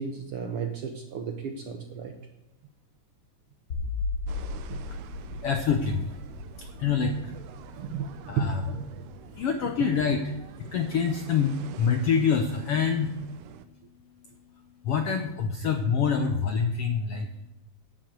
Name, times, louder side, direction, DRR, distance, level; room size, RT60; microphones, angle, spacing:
voice 1, 0.0-2.1 4.7-4.8 5.3-5.4 7.7-8.1 8.4-8.9, right 6 dB, 65° right, 4 dB, 1.5 m, -33 dB
sound 1, 3.7-10.9, left 3 dB, 50° left, 1.3 m, -37 dB
sound 2, 4.3-13.6, right 10 dB, 90° right, 2.4 m, -47 dB
voice 2, 4.9-8.0 8.3-8.6 8.9-17.5, left 6 dB, 70° left, 5 dB, 1.4 m, -28 dB
11.0 x 7.8 x 8.0 m, 0.98 s
omnidirectional pair, 3.6 m